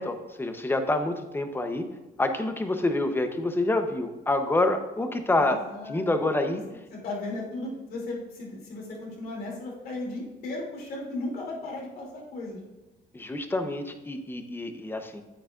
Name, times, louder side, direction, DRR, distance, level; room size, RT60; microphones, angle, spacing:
voice 1, 0.0-1.8 2.2-6.6 13.1-15.2, left 2 dB, 15° left, 7 dB, 0.8 m, -27 dB
voice 2, 5.4-6.1 6.9-12.6, left 2 dB, 65° left, -2 dB, 2.9 m, -36 dB
9.0 x 8.6 x 2.5 m, 1.1 s
cardioid pair, 110°, 17 cm